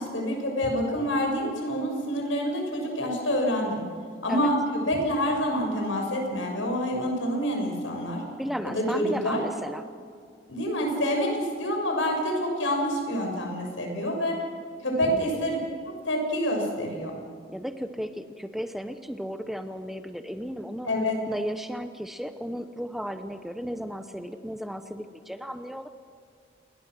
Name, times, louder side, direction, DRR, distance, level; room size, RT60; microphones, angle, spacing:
voice 1, 0.0-3.8 4.2-4.5 4.9-8.2 8.6-9.4 10.5-14.4 14.8-15.6 15.9-17.1 20.8-21.2, equal, 85° left, 2 dB, 6.4 m, -27 dB
voice 2, 8.4-9.8 14.9-15.3 17.5-20.9 21.3-25.9, equal, ahead, 8 dB, 0.8 m, -34 dB
28.5 x 21.0 x 6.3 m, 2.1 s
head